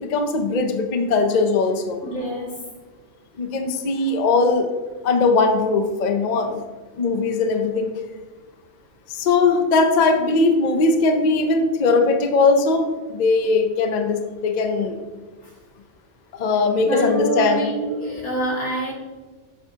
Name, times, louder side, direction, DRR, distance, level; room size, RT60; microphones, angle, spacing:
voice 1, 0.0-2.0 3.4-4.7 5.0-6.6 7.0-7.9 9.1-15.0 16.4-17.7, left 3 dB, 45° left, 6 dB, 0.7 m, -20 dB
voice 2, 2.0-2.7 4.0-4.1 15.4-15.6 16.8-18.9, right 1 dB, 90° left, -4 dB, 2.5 m, -27 dB
8.1 x 7.3 x 2.8 m, 1.3 s
omnidirectional pair, 1.3 m